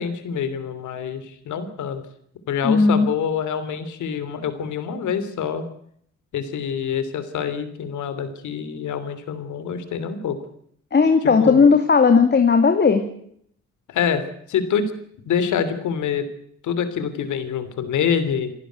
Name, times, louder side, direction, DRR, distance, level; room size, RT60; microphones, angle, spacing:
voice 1, 0.0-2.0 2.5-5.7 6.3-10.4 11.4-11.6 13.9-14.9 15.2-16.3 16.6-18.5, left 7 dB, 75° left, 12 dB, 3.2 m, -26 dB
voice 2, 2.6-3.1 10.9-13.0, left 5 dB, 35° left, 7 dB, 2.4 m, -16 dB
28.5 x 11.5 x 9.4 m, 0.68 s
cardioid pair, 90°, 30 cm